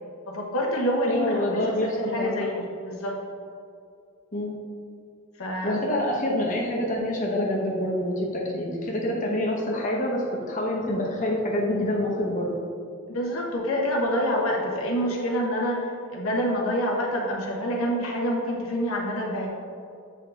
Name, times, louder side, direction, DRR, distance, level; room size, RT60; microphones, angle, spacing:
voice 1, 0.3-3.2 5.4-5.8 13.1-19.5, equal, 80° left, -2 dB, 1.0 m, -27 dB
voice 2, 1.1-2.4 4.3-4.5 5.6-12.5, left 1 dB, 40° left, -2 dB, 1.0 m, -26 dB
7.5 x 3.7 x 3.4 m, 2.4 s
head